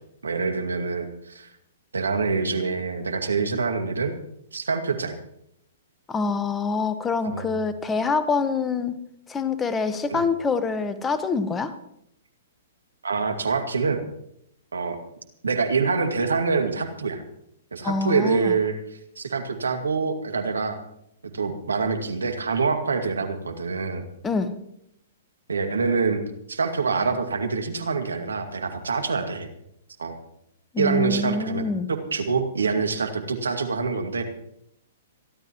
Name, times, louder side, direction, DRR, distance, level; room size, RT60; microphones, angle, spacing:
voice 1, 0.2-1.5 1.9-4.1 4.5-5.1 7.2-7.5 10.1-10.2 13.0-14.0 14.7-15.0 15.4-17.2 17.7-18.8 19.2-20.8 21.2-24.0 25.5-26.2 26.5-29.5 30.0-30.2 30.8-31.6 31.9-34.2, right 4 dB, 80° right, 6 dB, 2.1 m, -25 dB
voice 2, 6.1-9.0 9.3-11.7 17.8-18.6 24.2-24.5 30.7-31.9, left 4 dB, 15° left, 11 dB, 1.2 m, -25 dB
27.0 x 12.5 x 3.1 m, 0.75 s
figure-of-eight pair, 115°, 0 cm